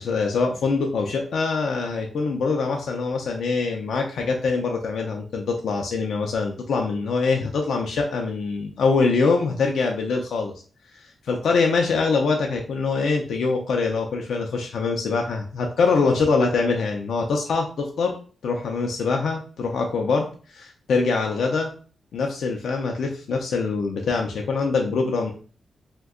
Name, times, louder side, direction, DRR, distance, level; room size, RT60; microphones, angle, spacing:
voice 1, 0.0-10.5 10.9-18.2 18.4-21.7 22.1-25.3, left 4 dB, 85° left, 2 dB, 0.4 m, -24 dB
2.6 x 2.2 x 3.6 m, 0.41 s
wide cardioid pair, 105°, 0 cm